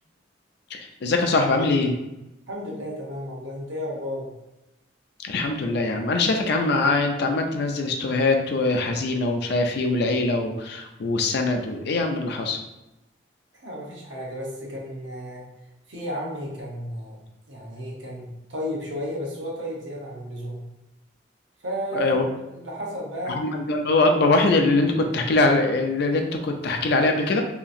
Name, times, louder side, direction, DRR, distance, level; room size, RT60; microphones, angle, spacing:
voice 1, 0.7-1.9 5.2-12.6 21.9-22.2 23.3-27.4, left 2 dB, 60° left, 4 dB, 0.4 m, -22 dB
voice 2, 2.5-4.3 13.6-15.5 15.9-17.2 17.5-20.6 21.6-22.2 22.5-23.4, equal, 80° right, -3 dB, 0.9 m, -33 dB
2.8 x 2.4 x 2.6 m, 0.96 s
head